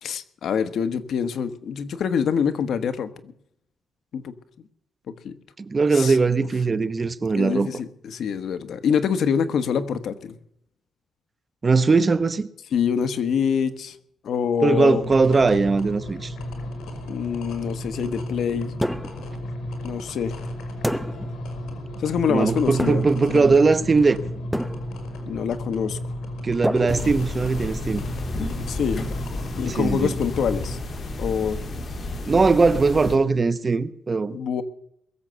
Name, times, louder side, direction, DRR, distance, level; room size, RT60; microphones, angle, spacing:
voice 1, 0.0-3.3 4.1-4.3 5.1-5.4 5.9-6.2 7.3-10.4 12.7-14.0 14.2-15.0 17.1-18.7 19.8-20.3 22.0-23.5 25.3-26.0 28.7-29.0 29.6-30.8 31.2-31.6 34.3-34.6, left 7 dB, 65° left, 1.4 m, -25 dB
voice 2, 5.6-7.7 11.6-12.5 14.6-16.3 22.3-24.2 26.4-28.0 29.7-30.1 32.3-34.4, right 4 dB, 30° right, 0.9 m, -20 dB
sound 1, 15.0-30.7, left 1 dB, 80° left, 4.4 m, -34 dB
sound 2, 18.8-19.4 20.8-21.4 22.8-23.3 24.5-25.1 26.6-27.6, equal, ahead, 0.8 m, -28 dB
sound 3, 26.9-33.2, left 2 dB, 40° left, 2.6 m, -32 dB
22.0 x 7.7 x 6.9 m
cardioid pair, 120°, 0 cm